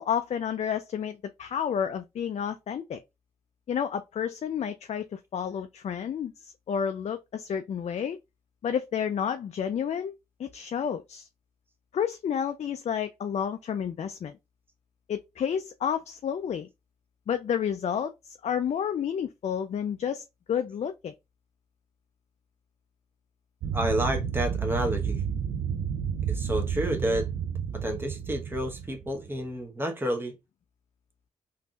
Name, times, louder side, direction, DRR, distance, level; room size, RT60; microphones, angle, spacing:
voice 1, 0.0-3.0 3.7-8.2 8.6-10.1 10.4-11.3 11.9-14.4 15.1-16.7 17.3-21.1, left 8 dB, 50° left, 0.4 m, -30 dB
sound 1, 23.6-29.4, right 7 dB, 80° right, 0.4 m, -31 dB
voice 2, 23.7-25.2 26.3-27.3 27.7-30.4, equal, 15° right, 0.9 m, -30 dB
3.4 x 2.7 x 2.2 m
supercardioid pair, 45°, 15 cm